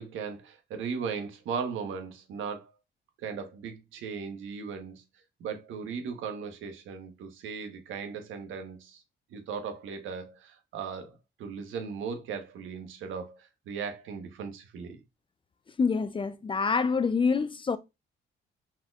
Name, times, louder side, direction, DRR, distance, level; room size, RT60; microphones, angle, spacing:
voice 1, 0.0-2.7 3.2-5.0 5.4-9.0 9.3-15.0, right 6 dB, 80° right, 1.1 m, -37 dB
voice 2, 15.8-17.8, left 5 dB, 25° left, 0.4 m, -26 dB
4.3 x 3.9 x 2.3 m
cardioid pair, 90°, 20 cm